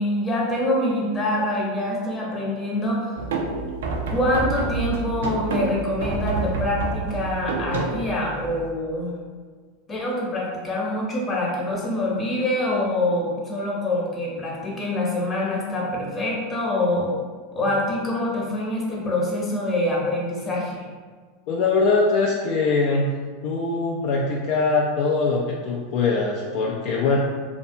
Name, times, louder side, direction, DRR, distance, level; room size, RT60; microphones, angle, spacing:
voice 1, 0.0-3.1 4.1-9.2 9.9-17.1 17.5-20.8, left 1 dB, 25° left, -4 dB, 0.8 m, -25 dB
sound 1, 3.1-8.7, right 3 dB, 80° right, 0.4 m, -28 dB
voice 2, 21.5-23.1 23.4-27.2, left 4 dB, 60° left, -2 dB, 0.3 m, -22 dB
2.6 x 2.3 x 2.6 m, 1.5 s
hypercardioid pair, 100°, 0 cm